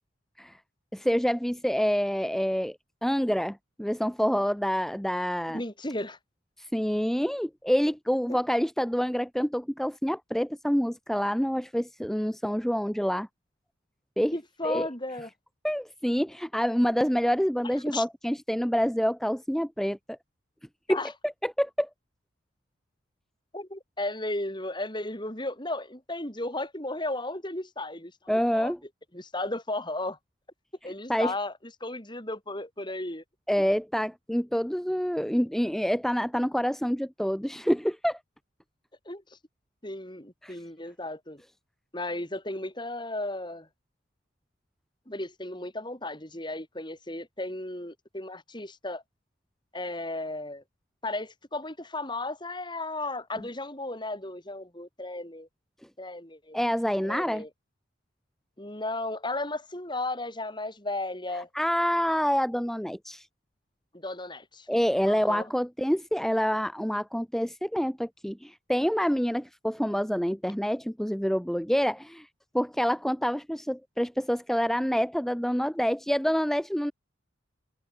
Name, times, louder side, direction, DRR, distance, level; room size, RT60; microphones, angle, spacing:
voice 1, 0.9-5.6 6.6-13.3 14.2-14.3 14.6-14.9 15.6-20.2 20.9-21.0 21.2-21.9 28.3-28.8 31.1-31.3 33.5-38.2 40.4-40.6 56.5-57.4 61.5-63.3 64.7-72.3 72.5-76.9, equal, ahead, 0.9 m, -27 dB
voice 2, 5.5-6.2 8.3-8.4 14.3-15.3 17.9-18.0 20.9-21.1 23.5-28.7 29.1-30.2 30.8-31.5 31.8-33.2 39.1-39.4 39.8-41.4 41.9-43.7 45.1-49.0 49.7-50.6 51.0-55.5 56.0-56.6 57.0-57.5 58.6-61.5 63.9-64.7 65.0-65.5, left 2 dB, 20° left, 6.8 m, -35 dB
head